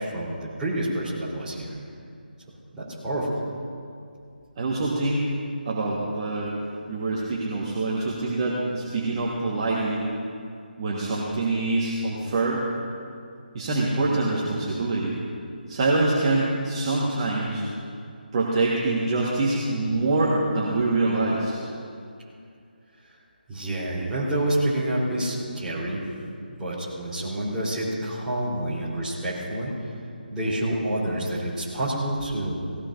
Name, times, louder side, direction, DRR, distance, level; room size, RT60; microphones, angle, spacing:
voice 1, 0.0-1.7 2.8-3.4 23.5-26.0 26.6-29.7 30.3-32.7, right 1 dB, 10° right, -9 dB, 4.0 m, -28 dB
voice 2, 4.6-5.3 5.6-6.5 6.9-10.1 10.8-12.6 13.5-15.1 15.7-17.6 18.3-21.6, right 2 dB, 30° right, -4 dB, 1.6 m, -25 dB
18.0 x 18.0 x 2.7 m, 2.4 s
figure-of-eight pair, 155°, 5 cm